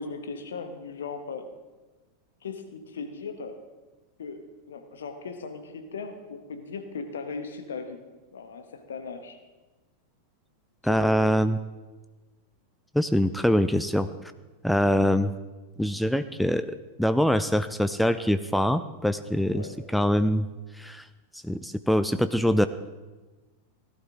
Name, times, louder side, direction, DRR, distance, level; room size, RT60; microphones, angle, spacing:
voice 1, 0.0-1.5 2.4-3.6 4.2-4.4 4.7-8.0 8.3-9.4 10.9-11.4 19.5-19.8, left 4 dB, 65° left, 7 dB, 1.4 m, -38 dB
voice 2, 10.8-11.6 12.9-14.1 14.6-15.3 15.8-19.7 19.9-20.5 20.8-21.0 21.4-22.7, equal, ahead, 11 dB, 0.4 m, -24 dB
16.5 x 11.5 x 3.9 m, 1.2 s
figure-of-eight pair, 90°, 0 cm